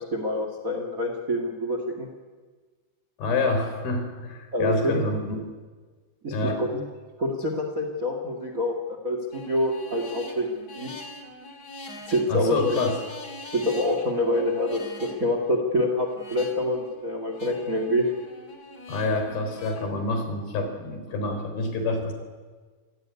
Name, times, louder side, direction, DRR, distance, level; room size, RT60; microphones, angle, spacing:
voice 1, 0.0-2.1 4.5-5.0 6.2-6.8 7.2-10.5 10.7-10.9 12.1-12.8 13.5-18.0, left 1 dB, 85° right, 5 dB, 0.7 m, -26 dB
voice 2, 3.2-5.4 6.3-6.6 12.3-13.0 18.9-22.1, left 2 dB, 50° left, 6 dB, 5.3 m, -27 dB
sound 1, 9.3-19.9, left 2 dB, 35° left, 1.6 m, -43 dB
27.5 x 16.5 x 9.6 m, 1.4 s
omnidirectional pair, 5.7 m